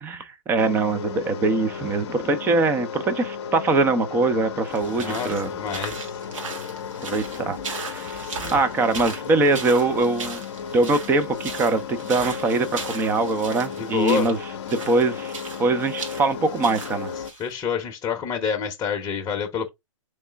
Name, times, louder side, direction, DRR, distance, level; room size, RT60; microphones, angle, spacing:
voice 1, 0.0-5.5 7.0-8.3 8.5-10.4 10.7-14.4 14.7-15.3 15.6-17.1, right 3 dB, 10° right, 0.5 m, -23 dB
sound 1, 0.6-17.3, left 7 dB, 55° left, 0.7 m, -34 dB
sound 2, 4.7-17.5, right 4 dB, 70° right, 1.8 m, -37 dB
voice 2, 4.9-6.1 8.2-8.6 13.8-14.3 17.4-19.7, left 7 dB, 20° left, 0.8 m, -28 dB
3.6 x 3.2 x 3.3 m
hypercardioid pair, 135°, 17 cm